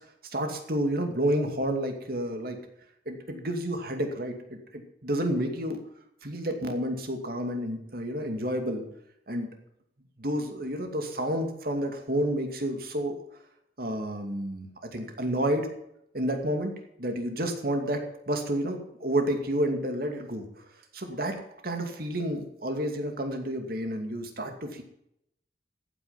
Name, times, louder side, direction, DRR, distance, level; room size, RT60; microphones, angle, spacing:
voice 1, 0.3-2.6 3.1-5.8 6.2-8.9 9.3-9.5 10.2-13.2 13.8-14.7 14.9-15.7 16.1-16.7 17.0-20.6 20.9-21.4 21.6-24.8, right 1 dB, 55° right, 5 dB, 2.5 m, -30 dB
15.0 x 9.3 x 5.8 m, 0.77 s
head